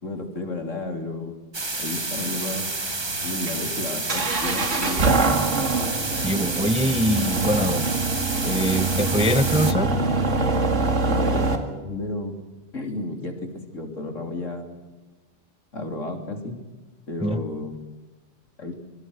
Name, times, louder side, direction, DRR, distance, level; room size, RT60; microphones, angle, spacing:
voice 1, 0.0-1.4 1.8-2.7 3.2-5.2 11.1-12.4 12.7-14.8 15.7-16.6 17.1-17.7 18.6-18.8, left 2 dB, 75° left, 4 dB, 3.8 m, -32 dB
sound 1, 1.5-9.7, right 3 dB, 20° right, 1.2 m, -29 dB
sound 2, 2.4-11.6, right 3 dB, 70° right, 2.6 m, -24 dB
voice 2, 6.1-7.8 8.4-9.9 17.2-17.4, left 1 dB, 5° right, 13 dB, 0.6 m, -24 dB
26.0 x 23.0 x 6.4 m, 1.2 s
omnidirectional pair, 1.3 m